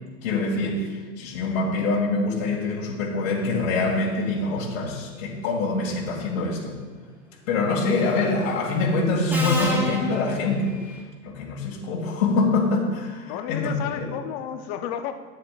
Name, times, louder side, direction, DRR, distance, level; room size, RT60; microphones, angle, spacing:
voice 1, 0.2-6.8 7.5-10.7 11.2-14.1, left 3 dB, 50° left, -4 dB, 2.2 m, -25 dB
Subway metro underground, 7.8-8.2 9.3-11.0, equal, 5° right, 1.4 m, -30 dB
voice 2, 13.2-15.1, left 9 dB, 30° left, 8 dB, 0.7 m, -32 dB
14.5 x 9.6 x 2.5 m, 1.4 s
hypercardioid pair, 125°, 48 cm